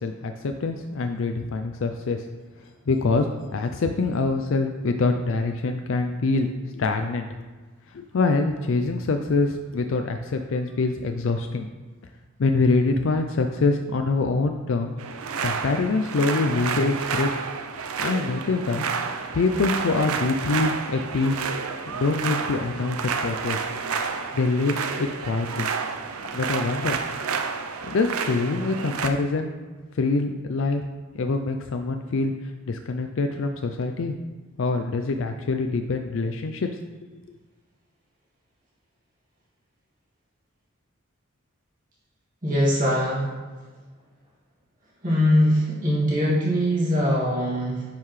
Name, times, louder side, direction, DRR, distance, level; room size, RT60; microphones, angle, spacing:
voice 1, 0.0-2.2 2.9-7.3 7.9-11.7 12.4-14.9 15.4-17.3 18.0-21.4 21.9-23.7 24.3-25.7 26.3-27.0 27.8-29.6 29.9-30.8 31.1-34.2 34.6-36.7, left 3 dB, 60° left, 6 dB, 0.4 m, -25 dB
sound 1, 15.0-29.1, right 5 dB, 80° right, 0.6 m, -30 dB
voice 2, 42.4-43.3 45.0-47.9, equal, 40° right, -6 dB, 2.3 m, -22 dB
10.0 x 5.6 x 3.2 m, 1.4 s
head